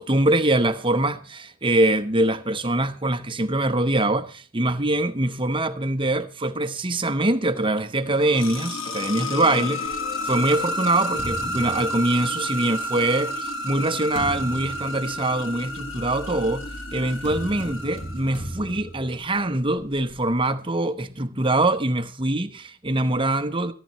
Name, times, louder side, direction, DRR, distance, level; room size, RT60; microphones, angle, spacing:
voice 1, 0.0-9.9 10.2-23.7, right 2 dB, 25° right, 1.0 m, -23 dB
sound 1, 8.0-18.7, left 1 dB, 60° left, 1.7 m, -31 dB
sound 2, 9.8-12.7 13.4-20.4, right 1 dB, 30° left, 4.8 m, -38 dB
25.0 x 11.5 x 3.1 m
head